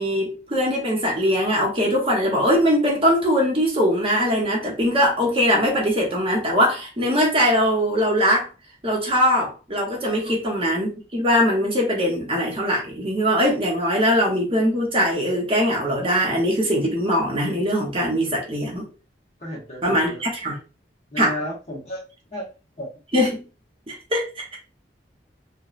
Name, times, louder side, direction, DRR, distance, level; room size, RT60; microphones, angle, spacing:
voice 1, 0.0-8.5 8.8-18.9 19.8-20.5 21.2-21.3 23.1-23.4 23.9-24.6, equal, 30° right, -2 dB, 0.8 m, -21 dB
voice 2, 19.4-20.2 21.1-22.0 22.3-22.5 22.8-22.9, equal, 40° left, -3 dB, 1.1 m, -33 dB
3.0 x 2.1 x 2.4 m, 0.32 s
head